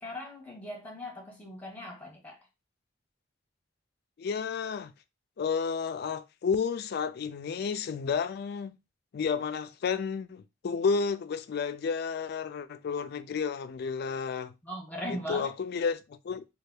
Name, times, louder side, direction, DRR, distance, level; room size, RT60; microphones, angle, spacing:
voice 1, 0.0-2.4 14.6-15.5, equal, 10° left, 1.1 m, -39 dB
voice 2, 4.2-4.9 5.4-8.8 9.1-14.5 15.1-16.4, left 5 dB, 60° left, 0.3 m, -31 dB
3.3 x 2.3 x 3.4 m
head